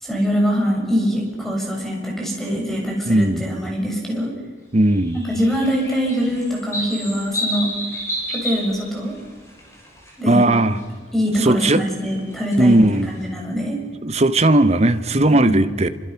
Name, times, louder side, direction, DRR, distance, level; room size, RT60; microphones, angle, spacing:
voice 1, 0.0-4.3 5.1-7.7 8.3-9.2 10.2-10.7 11.1-13.8 15.3-15.6, equal, ahead, -1 dB, 6.9 m, -23 dB
voice 2, 3.1-3.5 4.7-5.2 10.3-10.8 11.4-11.8 12.6-13.1 14.0-15.9, right 1 dB, 35° right, 11 dB, 1.2 m, -17 dB
sound 1, 5.0-10.1 10.4-10.8 12.0-13.2, equal, 15° left, 7.3 m, -30 dB
28.0 x 25.5 x 6.0 m, 1.5 s
head